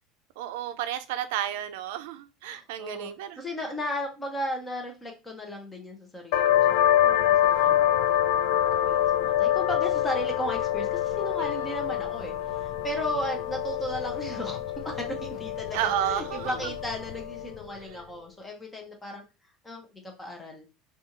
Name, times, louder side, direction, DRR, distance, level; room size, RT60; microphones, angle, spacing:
voice 1, 0.4-3.7 11.5-11.7 15.7-16.7 17.9-18.0, right 11 dB, 80° right, 0.3 m, -32 dB
voice 2, 2.5-3.1 3.4-19.2 19.6-20.7, equal, 10° left, 0.6 m, -36 dB
sound 1, 6.3-17.6, left 11 dB, 60° left, 0.4 m, -26 dB
2.5 x 2.3 x 2.9 m
cardioid pair, 170°, 0 cm